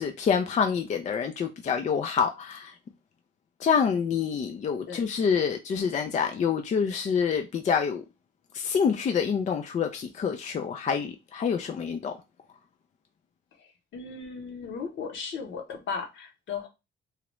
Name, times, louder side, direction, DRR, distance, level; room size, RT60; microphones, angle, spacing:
voice 1, 0.0-2.7 3.6-8.0 8.5-12.1, left 6 dB, 35° left, 0.4 m, -27 dB
voice 2, 13.6-16.7, left 5 dB, 70° left, 1.1 m, -36 dB
3.0 x 2.4 x 3.0 m
cardioid pair, 90°, 20 cm